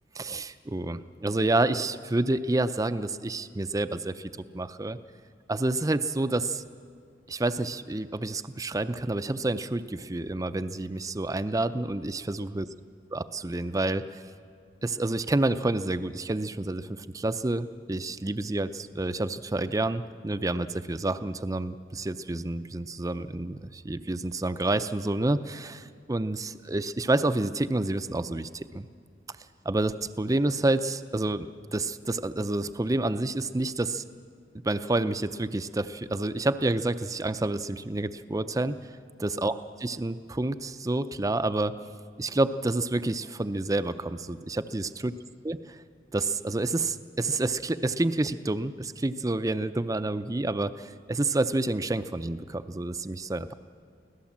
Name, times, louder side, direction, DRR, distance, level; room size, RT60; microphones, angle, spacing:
voice 1, 0.2-5.0 5.5-6.6 7.3-12.7 13.1-14.0 14.8-28.9 29.6-34.0 34.6-38.8 39.2-39.5 39.8-41.7 42.2-45.1 45.4-45.6 46.1-53.5, right 2 dB, 20° right, 12 dB, 0.5 m, -29 dB
24.5 x 17.0 x 7.4 m, 2.1 s
head